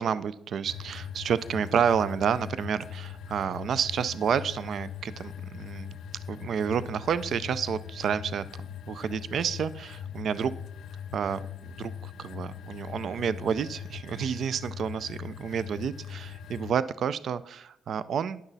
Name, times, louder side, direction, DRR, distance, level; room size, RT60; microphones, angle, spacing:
voice 1, 0.0-5.9 6.3-10.5 11.1-18.4, right 7 dB, 60° right, 16 dB, 0.4 m, -30 dB
sound 1, 0.7-16.7, left 8 dB, 70° left, 0.6 m, -41 dB
9.8 x 6.0 x 4.0 m, 0.75 s
cardioid pair, 90°, 0 cm